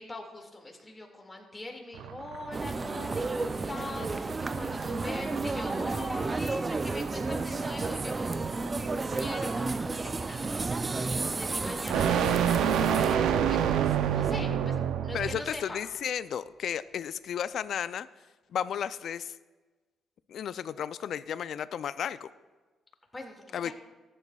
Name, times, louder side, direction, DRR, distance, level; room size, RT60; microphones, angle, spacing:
voice 1, 0.0-8.5 8.7-14.8 15.0-15.8 23.1-23.7, left 2 dB, 20° left, 1 dB, 2.0 m, -43 dB
sound 1, 1.9-15.5, right 8 dB, 85° right, 0.5 m, -30 dB
sound 2, 2.5-13.2, right 3 dB, 30° right, 0.4 m, -32 dB
voice 2, 15.1-18.1 18.5-19.4 20.3-22.3 23.5-23.7, left 9 dB, 65° left, 15 dB, 0.3 m, -33 dB
14.0 x 9.9 x 2.3 m, 1.3 s
cardioid pair, 80°, 0 cm